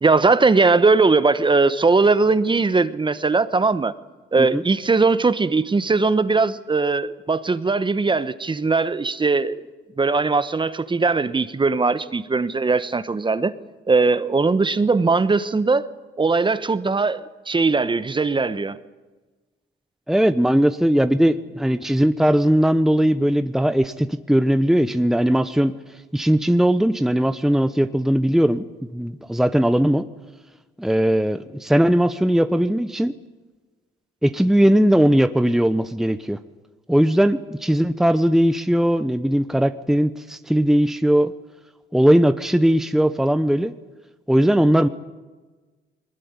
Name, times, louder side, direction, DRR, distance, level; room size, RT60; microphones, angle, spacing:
voice 1, 0.0-3.9 4.3-9.6 10.0-13.5 13.9-15.9 16.2-18.8, right 3 dB, 25° right, 1.1 m, -19 dB
voice 2, 20.1-25.7 26.1-30.1 30.8-33.1 34.2-36.4 36.9-41.3 41.9-43.7 44.3-44.9, equal, ahead, 0.9 m, -19 dB
21.5 x 20.0 x 9.7 m
cardioid pair, 90°, 20 cm